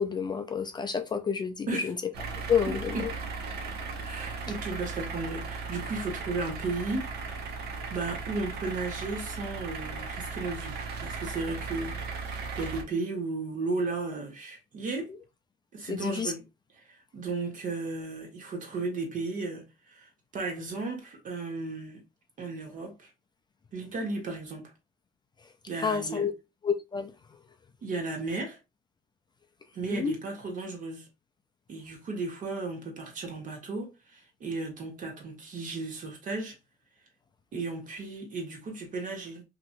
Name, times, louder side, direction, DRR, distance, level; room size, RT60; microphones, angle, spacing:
voice 1, 0.0-2.0 2.5-3.0 15.9-16.3 25.8-26.3 26.6-27.1 29.9-30.1, left 6 dB, 25° left, 0.3 m, -29 dB
sound 1, 2.1-12.8, right 4 dB, 70° right, 0.7 m, -37 dB
voice 2, 2.7-3.1 4.0-7.1 7.9-15.1 15.7-16.4 16.7-22.0 22.4-23.1 23.7-24.7 25.7-26.3 27.8-28.6 29.7-31.1 31.7-36.6 37.5-39.4, right 3 dB, 50° right, 1.2 m, -35 dB
2.9 x 2.6 x 2.5 m
cardioid pair, 110°, 17 cm